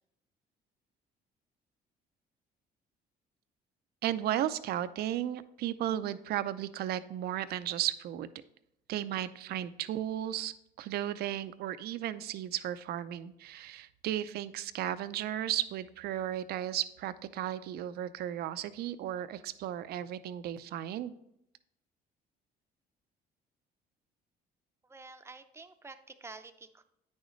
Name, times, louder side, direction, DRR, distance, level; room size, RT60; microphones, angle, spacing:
voice 1, 4.0-8.3 8.9-21.1, right 12 dB, 70° right, 14 dB, 0.5 m, -35 dB
voice 2, 24.8-26.8, right 3 dB, 15° right, 9 dB, 0.6 m, -49 dB
9.1 x 6.4 x 3.1 m, 0.78 s
cardioid pair, 110°, 17 cm